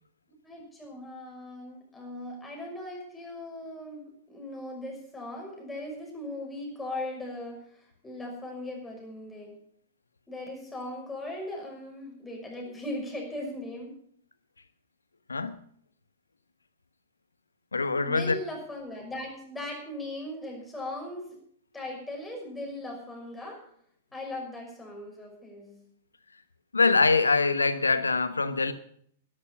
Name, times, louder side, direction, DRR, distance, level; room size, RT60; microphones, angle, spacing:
voice 1, 0.4-9.6 10.3-14.0 18.0-21.4 21.7-23.6 24.1-25.8, left 1 dB, 10° left, 6.0 m, -39 dB
voice 2, 17.7-18.4 26.7-28.7, left 4 dB, 80° left, 1.1 m, -24 dB
12.5 x 11.0 x 7.3 m
figure-of-eight pair, 105°, 0 cm